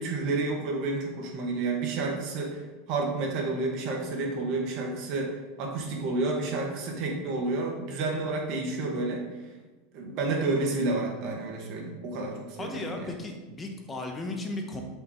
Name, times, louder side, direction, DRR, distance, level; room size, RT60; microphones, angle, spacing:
voice 1, 0.0-2.6 2.9-5.3 5.6-9.2 9.9-13.2, right 3 dB, 50° right, 0 dB, 1.7 m, -30 dB
voice 2, 12.6-14.8, left 2 dB, 20° left, 3 dB, 0.9 m, -35 dB
7.6 x 5.5 x 3.1 m, 1.2 s
supercardioid pair, 140°, 0 cm